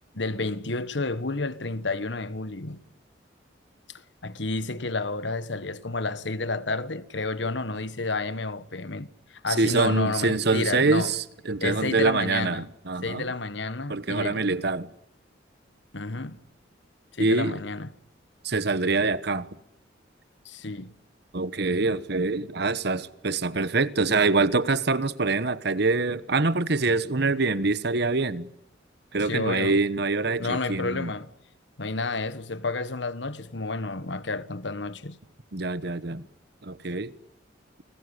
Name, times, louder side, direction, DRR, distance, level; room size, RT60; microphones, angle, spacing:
voice 1, 0.1-2.8 4.2-11.1 11.6-12.6 13.0-14.5 15.9-16.4 17.2-17.9 20.4-20.9 29.2-29.8 30.4-31.3 31.8-35.2, left 3 dB, 70° left, 1.4 m, -30 dB
voice 2, 9.5-13.2 13.9-14.9 17.2-17.6 18.4-19.5 21.3-28.5 29.1-31.1 35.5-36.3 36.6-37.1, right 3 dB, 60° right, 1.2 m, -25 dB
29.5 x 20.0 x 9.8 m
head